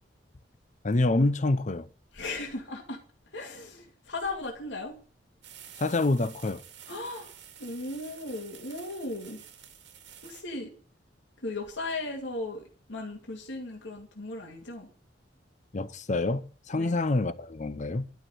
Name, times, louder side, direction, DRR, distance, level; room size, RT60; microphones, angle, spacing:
voice 1, 0.8-1.9 5.8-6.6 15.7-18.1, left 2 dB, 40° left, 0.7 m, -27 dB
voice 2, 2.1-3.0 3.3-5.0 6.9-7.3 7.6-9.4 10.2-10.7 11.4-14.9 16.8-17.0, left 2 dB, 85° left, 2.5 m, -37 dB
sound 1, 5.4-10.4, right 9 dB, 80° right, 2.2 m, -50 dB
12.0 x 6.3 x 9.1 m
head